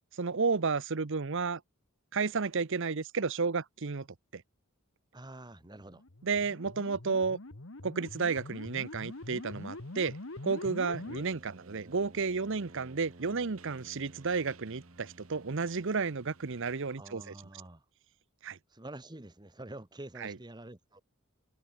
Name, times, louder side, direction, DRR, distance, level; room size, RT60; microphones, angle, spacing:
voice 1, 0.1-1.6 2.1-4.1 4.3-4.4 6.2-7.4 7.8-10.2 10.4-17.3 18.4-18.6 20.2-20.3, right 4 dB, 60° right, 0.8 m, -32 dB
voice 2, 5.1-6.0 6.3-6.4 17.0-17.8 18.7-21.0, right 1 dB, 20° right, 1.5 m, -47 dB
sound 1, 5.8-11.2, left 2 dB, 65° left, 1.5 m, -44 dB
sound 2, 8.0-17.0, right 6 dB, 75° right, 3.6 m, -63 dB
Brass instrument, 10.9-16.8, right 2 dB, 45° right, 1.5 m, -55 dB
open air
head